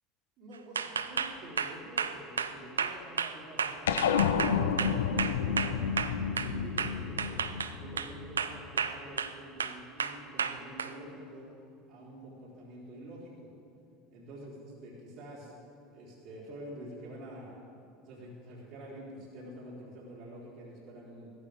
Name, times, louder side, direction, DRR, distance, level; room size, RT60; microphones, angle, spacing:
voice 1, 0.4-5.9 6.3-7.4 7.8-11.5 11.9-13.5 14.1-14.5 14.8-15.5 15.9-17.6 18.1-21.3, right 1 dB, 55° right, -6 dB, 3.8 m, -47 dB
sound 1, 0.8-6.5 6.8-8.1 8.4-9.3 9.6-10.9, right 6 dB, 90° right, 0.5 m, -32 dB
sound 2, 3.9-8.6, left 7 dB, 80° left, 0.6 m, -30 dB
16.0 x 14.5 x 3.5 m, 2.6 s
hypercardioid pair, 80°, 0 cm